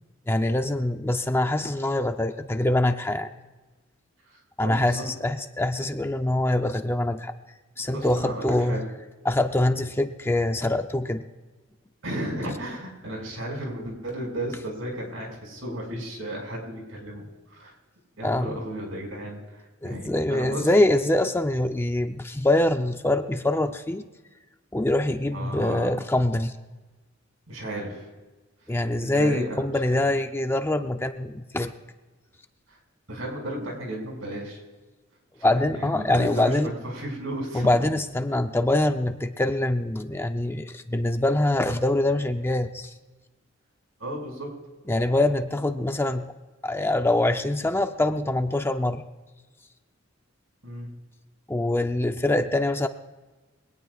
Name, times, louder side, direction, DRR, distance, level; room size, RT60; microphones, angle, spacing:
voice 1, 0.3-3.3 4.6-7.3 7.8-8.8 9.2-11.2 18.2-18.6 19.8-24.1 24.7-26.5 28.7-31.7 35.4-36.7 37.5-42.9 44.9-46.3 46.6-49.0 51.5-52.9, left 1 dB, 10° left, 7 dB, 0.6 m, -24 dB
voice 2, 4.2-5.1 7.9-8.9 12.0-17.7 18.2-20.7 25.3-25.9 27.5-28.1 29.0-30.0 32.7-32.8 33.1-34.6 35.4-37.9 44.0-44.7 50.6-50.9, right 1 dB, 80° right, 1 dB, 5.6 m, -34 dB
23.0 x 17.5 x 2.4 m, 1.2 s
head